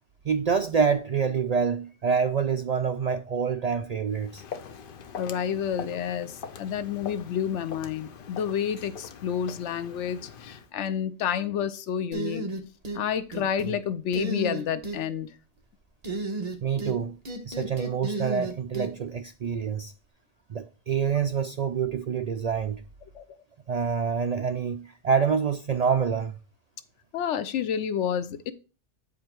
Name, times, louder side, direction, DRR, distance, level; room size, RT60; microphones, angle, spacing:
voice 1, 0.2-4.4 16.6-17.2 17.5-19.9 20.5-22.8 23.7-26.4, right 6 dB, 65° right, 0.4 m, -26 dB
Walk footsteps, 4.1-10.7, left 7 dB, 55° left, 0.8 m, -42 dB
voice 2, 5.2-12.5 12.9-15.3 23.1-23.2 27.1-28.5, left 8 dB, 85° left, 0.9 m, -29 dB
sound 1, 12.1-13.0 13.3-13.8 14.1-15.0 16.0-17.0 17.2-18.9, right 2 dB, 35° right, 1.2 m, -32 dB
8.4 x 5.0 x 4.5 m
omnidirectional pair, 1.2 m